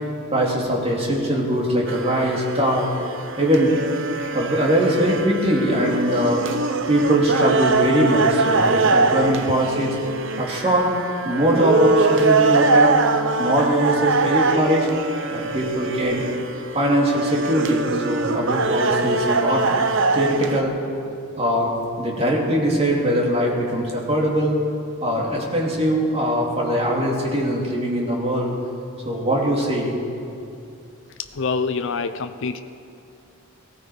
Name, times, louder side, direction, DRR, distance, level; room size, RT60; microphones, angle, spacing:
voice 1, 0.3-2.9 3.4-3.7 4.3-6.4 6.9-9.9 10.4-10.9 11.2-13.0 13.4-14.9 15.3-16.2 16.7-19.6 20.1-20.7 21.4-21.7 22.0-24.6 25.0-28.5 29.0-30.0, equal, 30° right, -2 dB, 2.7 m, -21 dB
sound 1, 1.9-20.6, right 3 dB, 60° right, 0.8 m, -22 dB
voice 2, 31.3-32.6, left 4 dB, 60° left, 9 dB, 0.6 m, -25 dB
18.5 x 15.5 x 4.9 m, 2.5 s
head